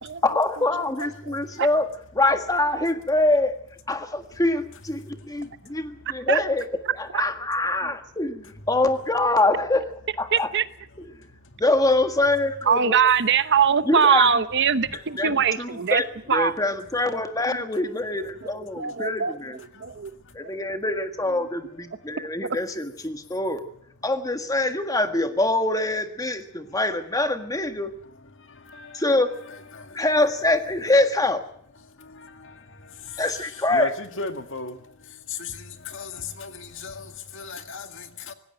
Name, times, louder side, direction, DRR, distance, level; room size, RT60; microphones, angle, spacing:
voice 1, 0.2-1.9 2.1-3.5 3.9-6.7 7.0-9.8 10.2-10.5 11.6-13.1 13.8-14.3 14.9-19.6 20.3-23.6 24.0-27.9 28.9-29.3 29.9-31.4 33.2-33.9, left 2 dB, 15° left, 1.6 m, -24 dB
voice 2, 10.3-10.6 12.7-16.0 16.3-16.5 18.4-18.5 18.8-19.3 19.8-20.1 20.5-20.6, right 7 dB, 55° right, 0.9 m, -21 dB
voice 3, 34.2-34.7 35.4-38.3, left 4 dB, 60° left, 2.0 m, -35 dB
19.0 x 16.5 x 9.0 m
head